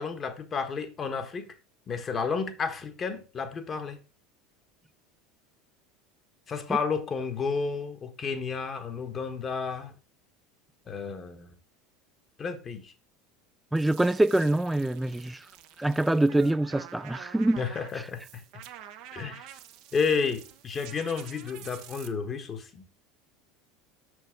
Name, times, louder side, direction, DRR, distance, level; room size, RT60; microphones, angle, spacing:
voice 1, 0.0-1.5 1.9-4.0 6.5-9.9 10.9-11.6 12.4-12.9 17.6-18.4 19.1-19.5 19.9-22.8, left 5 dB, 30° left, 1.4 m, -31 dB
voice 2, 13.7-15.4 15.8-17.6, right 1 dB, 5° right, 0.4 m, -25 dB
sound 1, 13.8-22.1, right 11 dB, 55° right, 0.9 m, -48 dB
6.7 x 6.4 x 3.6 m
figure-of-eight pair, 75°, 0 cm